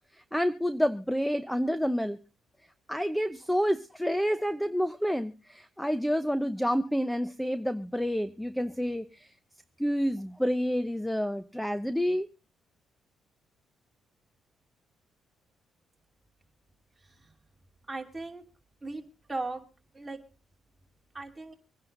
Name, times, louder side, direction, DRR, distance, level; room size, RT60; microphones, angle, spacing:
voice 1, 0.1-2.2 2.9-9.3 9.8-12.3, equal, 5° left, 0.7 m, -29 dB
voice 2, 17.9-18.4 18.8-19.0 19.3-19.6 19.9-20.2 21.1-21.5, right 2 dB, 15° right, 2.7 m, -37 dB
25.5 x 10.5 x 2.6 m
cardioid pair, 90°, 0 cm